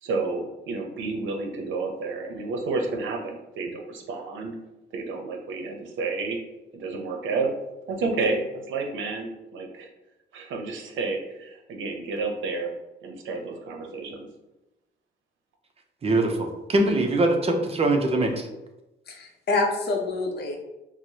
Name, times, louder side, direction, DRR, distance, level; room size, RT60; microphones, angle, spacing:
voice 1, 0.0-4.6 4.9-6.4 6.7-7.5 7.9-9.9 10.3-12.7 13.0-14.3, right 3 dB, 75° right, 3 dB, 0.6 m, -30 dB
voice 2, 16.0-18.5, right 2 dB, 30° right, 4 dB, 0.6 m, -22 dB
voice 3, 19.1-20.6, left 3 dB, 55° left, 2 dB, 0.7 m, -26 dB
4.5 x 2.0 x 2.7 m, 0.98 s
cardioid pair, 90°, 20 cm